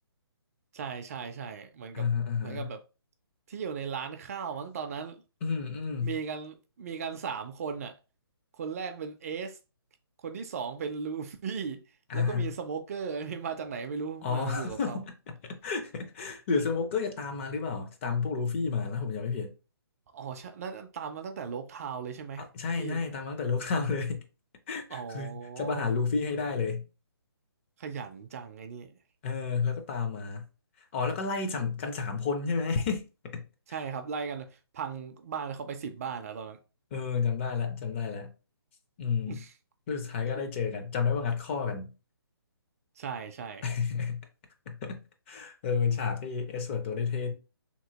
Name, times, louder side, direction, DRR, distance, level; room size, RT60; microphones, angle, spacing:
voice 1, 0.7-2.1 2.4-2.8 3.5-5.2 6.0-8.0 8.5-9.6 10.2-11.8 12.1-15.0 20.1-22.5 22.8-23.0 24.9-25.9 27.8-28.9 33.7-36.6 39.3-39.5 40.3-40.4 43.0-43.6, right 6 dB, 35° right, 0.4 m, -37 dB
voice 2, 1.9-2.7 5.4-6.1 12.1-12.5 14.2-15.1 15.4-19.5 22.4-24.2 24.7-26.8 29.2-30.5 30.8-33.4 36.9-38.3 39.0-39.4 39.9-41.9 43.6-44.2 44.7-45.0 45.3-47.3, left 5 dB, 30° left, 0.5 m, -31 dB
2.9 x 2.7 x 2.7 m
hypercardioid pair, 145°, 13 cm